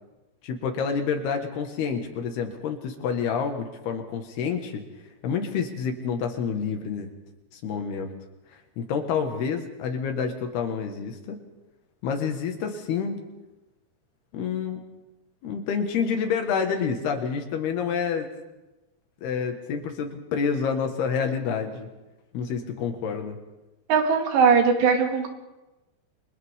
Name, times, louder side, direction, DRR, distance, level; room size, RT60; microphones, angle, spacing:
voice 1, 0.4-4.8 5.2-7.1 7.5-8.1 8.8-11.4 12.0-13.2 14.3-14.8 15.4-18.3 19.2-21.9 22.3-23.4, left 6 dB, 70° left, 4 dB, 3.6 m, -28 dB
voice 2, 23.9-25.3, right 5 dB, 80° right, 3 dB, 4.4 m, -20 dB
29.5 x 24.5 x 3.7 m, 1.1 s
omnidirectional pair, 4.9 m